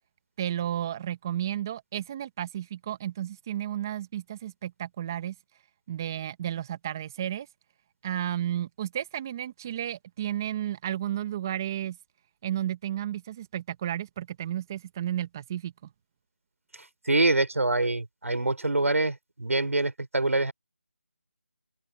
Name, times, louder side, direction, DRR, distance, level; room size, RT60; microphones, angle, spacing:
voice 1, 0.4-5.3 5.9-7.5 8.0-12.0 12.4-15.7, right 11 dB, 15° right, 1.2 m, -32 dB
voice 2, 17.1-19.1 19.4-20.5, right 2 dB, 85° right, 5.3 m, -25 dB
open air
figure-of-eight pair, 175°, 7 cm